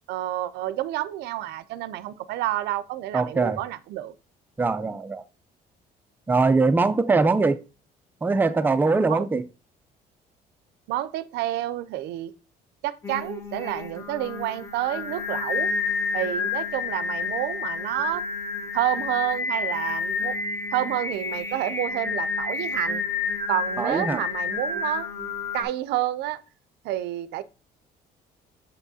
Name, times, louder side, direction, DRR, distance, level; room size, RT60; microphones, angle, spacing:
voice 1, 0.1-4.1 9.1-9.3 10.9-12.3 12.8-15.7 16.1-18.2 18.7-20.3 20.7-23.0 23.5-25.1 25.5-26.4 26.8-27.4, right 14 dB, 80° right, 0.5 m, -29 dB
voice 2, 3.1-3.6 4.6-5.2 6.3-7.6 8.2-9.4 23.8-24.2, right 3 dB, 10° right, 0.4 m, -22 dB
Singing, 13.0-25.6, left 5 dB, 15° left, 1.0 m, -30 dB
6.5 x 6.0 x 2.7 m
cardioid pair, 110°, 17 cm